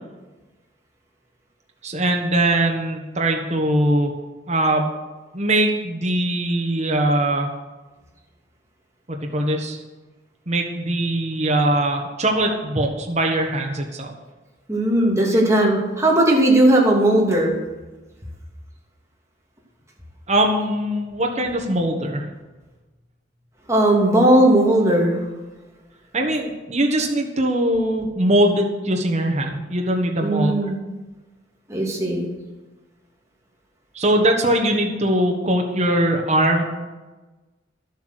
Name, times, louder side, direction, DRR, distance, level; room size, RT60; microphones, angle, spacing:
voice 1, 1.8-4.1 4.5-4.9 5.3-7.5 9.1-9.8 10.5-14.1 20.3-22.2 26.1-30.6 33.9-36.6, right 1 dB, 35° right, 1 dB, 1.4 m, -21 dB
voice 2, 14.7-17.5 23.7-25.2 30.2-30.8 31.7-32.2, right 1 dB, 15° right, -3 dB, 2.5 m, -17 dB
11.5 x 8.2 x 6.5 m, 1.2 s
head